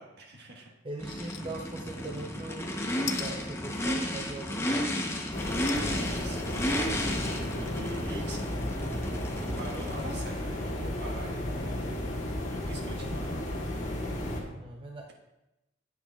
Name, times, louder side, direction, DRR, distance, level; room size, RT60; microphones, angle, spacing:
voice 1, 0.0-0.7 1.2-1.3 5.8-6.7 7.2-8.4 9.6-11.8 12.5-13.4, right 1 dB, 60° right, 0 dB, 1.5 m, -44 dB
voice 2, 0.8-5.1 14.6-15.1, right 2 dB, 30° right, 1 dB, 0.6 m, -41 dB
sound 1, 1.0-1.4 1.8-1.9 3.1-3.3 5.7-5.9 6.5-6.6 6.8-6.9, left 10 dB, 60° left, 0.4 m, -38 dB
Race car auto racing / Idling / Accelerating revving vroom, 1.0-10.4, left 1 dB, 15° left, 0.9 m, -33 dB
sound 2, 5.3-14.4, left 1 dB, 40° left, 1.4 m, -34 dB
10.0 x 8.3 x 2.4 m, 0.95 s
head